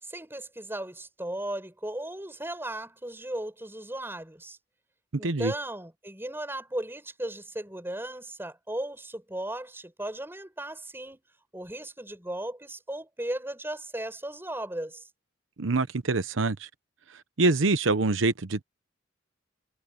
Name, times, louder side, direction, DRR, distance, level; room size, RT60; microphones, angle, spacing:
voice 1, 0.0-4.6 5.2-11.2 11.5-15.1, right 1 dB, 10° right, 7.6 m, -36 dB
voice 2, 5.2-5.5 15.6-16.7 17.4-18.6, right 3 dB, 80° right, 0.9 m, -25 dB
head